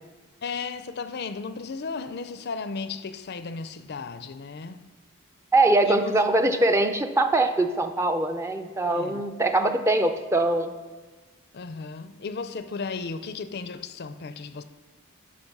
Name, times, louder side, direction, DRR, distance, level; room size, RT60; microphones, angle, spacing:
voice 1, 0.4-4.8 5.8-6.2 8.9-9.2 11.5-14.6, left 4 dB, 50° left, 0.5 m, -35 dB
voice 2, 5.5-10.7, right 2 dB, 10° right, 0.5 m, -22 dB
11.5 x 5.7 x 6.7 m
head